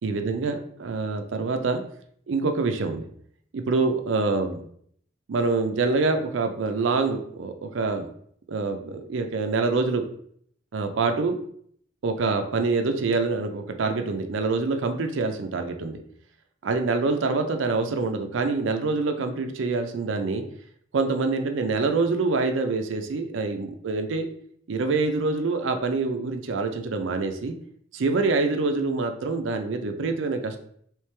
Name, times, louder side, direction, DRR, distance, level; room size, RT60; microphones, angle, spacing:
voice 1, 0.0-1.8 2.3-3.0 3.5-4.6 5.3-8.1 8.5-10.0 10.7-11.4 12.0-16.0 16.6-20.4 20.9-24.3 24.7-27.5 27.9-30.6, right 3 dB, 85° right, 6 dB, 0.5 m, -25 dB
3.2 x 3.1 x 3.2 m, 0.65 s
head